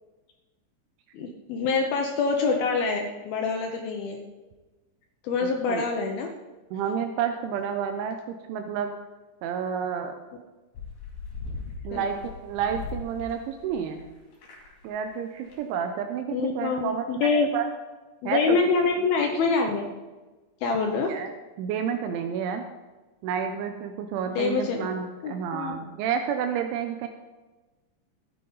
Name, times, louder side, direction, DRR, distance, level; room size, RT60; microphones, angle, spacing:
voice 1, 1.1-4.2 5.2-6.3 11.9-12.1 16.3-17.5 18.2-19.9 20.6-21.2 24.3-24.9 25.2-25.7, left 4 dB, 75° left, 2 dB, 2.3 m, -26 dB
voice 2, 6.7-8.9 9.4-10.1 11.8-14.1 14.8-17.7 18.2-18.6 21.1-21.3 21.6-22.7 23.2-27.1, right 7 dB, 85° right, 5 dB, 3.1 m, -30 dB
sound 1, 10.7-14.0 14.3-14.9 15.1-15.2 15.4-15.6, left 4 dB, 55° left, 4.1 m, -39 dB
14.5 x 9.7 x 4.0 m, 1.2 s
omnidirectional pair, 5.4 m